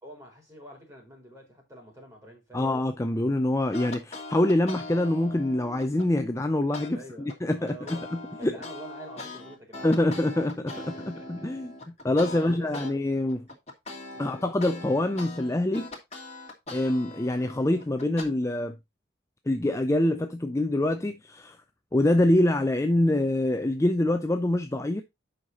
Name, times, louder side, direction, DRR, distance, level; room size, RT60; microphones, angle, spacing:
voice 1, 0.0-2.7 6.9-8.1 8.4-10.1 10.7-11.5 12.3-13.0 14.1-14.4, right 1 dB, 15° right, 4.1 m, -47 dB
voice 2, 2.5-7.0 7.4-8.6 9.8-10.7 11.1-13.5 14.2-15.9 16.7-18.8 19.5-21.6 21.9-25.0, left 1 dB, 15° left, 0.5 m, -25 dB
sound 1, 3.7-6.1 6.7-6.9 7.3-12.9 13.3-18.2, left 2 dB, 35° left, 2.5 m, -41 dB
7.8 x 5.7 x 4.1 m
head